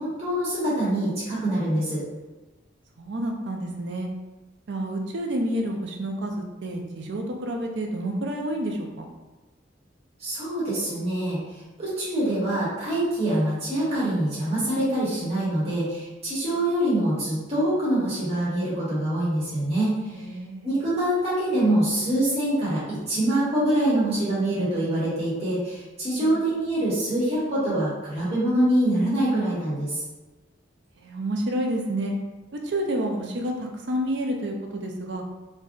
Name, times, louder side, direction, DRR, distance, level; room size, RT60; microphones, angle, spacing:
voice 1, 0.0-2.0 10.2-11.4 11.8-20.2 20.6-30.0, right 1 dB, 35° right, -9 dB, 1.0 m, -25 dB
voice 2, 3.0-4.1 4.7-9.1 20.1-20.7 26.2-26.3 31.0-32.1 32.6-35.2, right 1 dB, 65° right, 2 dB, 0.5 m, -29 dB
2.6 x 2.1 x 3.6 m, 1.2 s
head